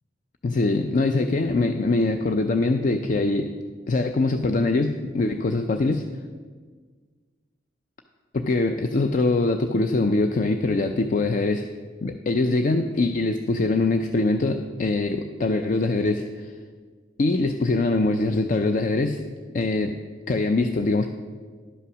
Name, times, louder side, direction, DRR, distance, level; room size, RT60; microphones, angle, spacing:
voice 1, 0.4-3.5 3.9-6.1 8.3-11.7 12.0-16.5 17.2-19.2 19.5-20.0 20.3-21.1, left 3 dB, 45° left, 7 dB, 0.4 m, -23 dB
11.0 x 5.6 x 6.2 m, 1.6 s
head